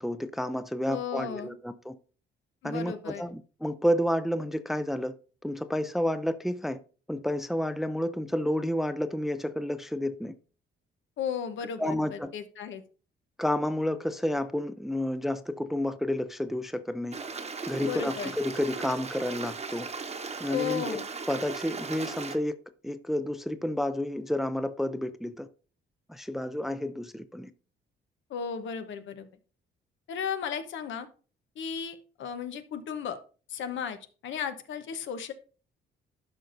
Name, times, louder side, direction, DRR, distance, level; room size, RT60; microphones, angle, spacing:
voice 1, 0.0-1.9 2.6-5.1 5.4-6.8 7.1-10.3 11.8-12.3 13.4-17.2 17.7-19.9 20.4-21.0 21.3-22.6 22.8-25.5 26.1-27.5, left 1 dB, ahead, 0.5 m, -30 dB
voice 2, 0.9-1.6 2.6-3.2 11.2-12.8 17.8-18.3 20.5-21.1 28.3-29.3 30.1-31.1 31.6-33.2 33.5-34.0 34.2-35.3, left 7 dB, 75° left, 1.0 m, -35 dB
Stream, 17.1-22.4, right 4 dB, 30° right, 1.0 m, -37 dB
12.0 x 5.2 x 2.6 m
cardioid pair, 90°, 20 cm